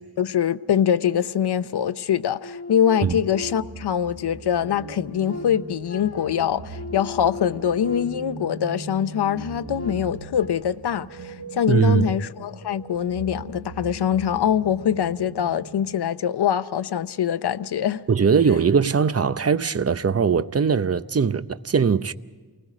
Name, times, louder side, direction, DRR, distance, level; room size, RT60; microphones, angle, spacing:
voice 1, 0.0-18.0, left 9 dB, 80° left, 0.7 m, -24 dB
sound 1, 2.4-3.9 4.4-8.5 8.9-10.5, left 2 dB, 40° left, 3.0 m, -38 dB
sound 2, 3.2-15.9, right 2 dB, 75° right, 2.3 m, -40 dB
voice 2, 11.7-12.0 18.1-22.1, right 6 dB, 40° right, 0.7 m, -20 dB
28.5 x 20.0 x 5.0 m
wide cardioid pair, 80°, 39 cm